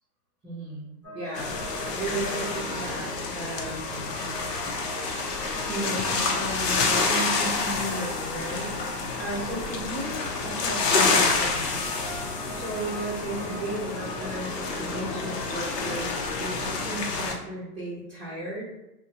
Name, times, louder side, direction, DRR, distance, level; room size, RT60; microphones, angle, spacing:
voice 1, 0.4-0.8 1.1-1.5 2.0-4.1 5.6-11.8 12.5-18.6, right 1 dB, 15° right, -9 dB, 0.6 m, -35 dB
sound 1, 1.0-16.7, equal, 5° left, 1.0 m, -41 dB
sound 2, 1.3-17.3, left 4 dB, 85° left, 0.8 m, -28 dB
2.7 x 2.2 x 2.8 m, 0.95 s
hypercardioid pair, 150°, 47 cm